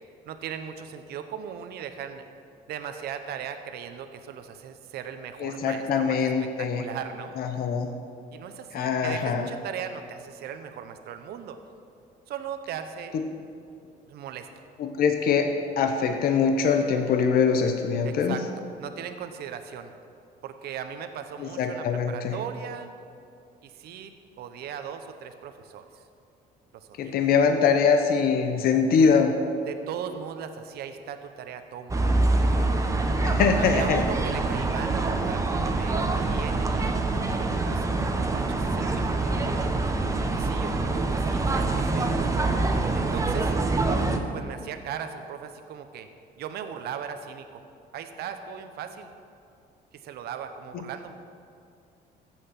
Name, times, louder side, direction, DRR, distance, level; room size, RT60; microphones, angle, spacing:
voice 1, 0.3-2.3 2.7-7.4 8.3-11.6 12.3-13.1 14.1-14.5 18.0-18.5 18.8-19.9 20.4-22.9 23.6-24.1 24.4-26.0 26.7-27.1 29.7-32.0 33.5-37.0 37.6-39.8 40.3-42.2 42.9-43.5 44.3-46.1 46.4-47.6 47.9-49.1 49.9-51.2, right 8 dB, 70° right, 8 dB, 0.9 m, -38 dB
voice 2, 5.4-6.8 7.4-7.9 8.7-9.5 13.1-13.2 14.8-18.4 21.4-22.4 27.0-29.3 33.2-34.0 50.7-50.8, left 6 dB, 65° left, 5 dB, 0.9 m, -23 dB
sound 1, 31.9-44.2, right 2 dB, 20° right, 1.1 m, -25 dB
15.0 x 7.6 x 5.9 m, 2.5 s
cardioid pair, 110°, 17 cm